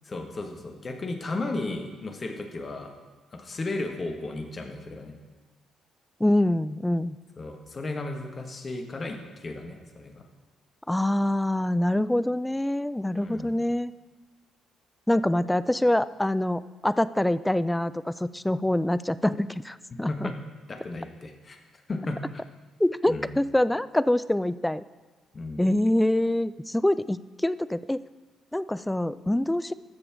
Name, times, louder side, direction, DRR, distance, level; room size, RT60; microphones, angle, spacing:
voice 1, 0.0-2.9 3.3-5.1 7.4-10.2 13.2-13.6 20.1-20.4 20.7-21.6 21.9-22.4 23.1-23.3 25.3-25.7, left 2 dB, 35° left, 4 dB, 1.4 m, -34 dB
voice 2, 6.2-7.2 10.9-13.9 15.1-20.3 22.8-24.8 25.6-28.0 28.5-29.7, left 1 dB, 10° left, 16 dB, 0.3 m, -25 dB
13.5 x 6.8 x 3.7 m, 1.3 s
figure-of-eight pair, 45°, 0 cm